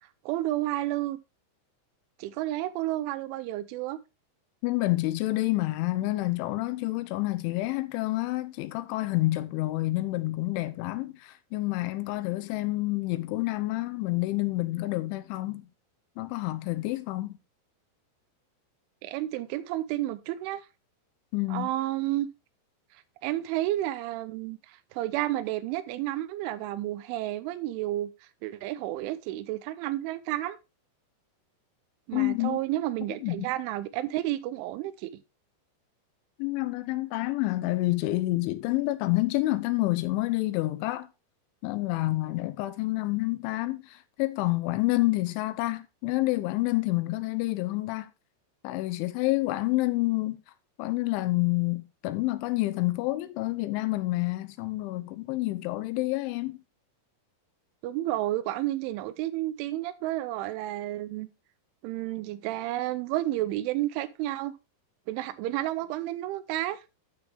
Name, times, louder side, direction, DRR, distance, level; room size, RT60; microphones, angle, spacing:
voice 1, 0.3-1.2 2.2-4.0 19.0-20.6 21.5-22.3 23.2-28.1 28.4-30.6 32.1-35.1 57.8-61.3 61.8-64.5 65.1-66.8, right 15 dB, 85° right, 3.2 m, -31 dB
voice 2, 4.6-15.7 16.2-17.4 21.3-21.7 32.1-32.6 33.2-33.5 36.4-41.1 41.6-48.1 48.6-50.4 50.8-56.6, left 19 dB, 85° left, 3.2 m, -28 dB
11.5 x 6.1 x 3.5 m
omnidirectional pair, 5.4 m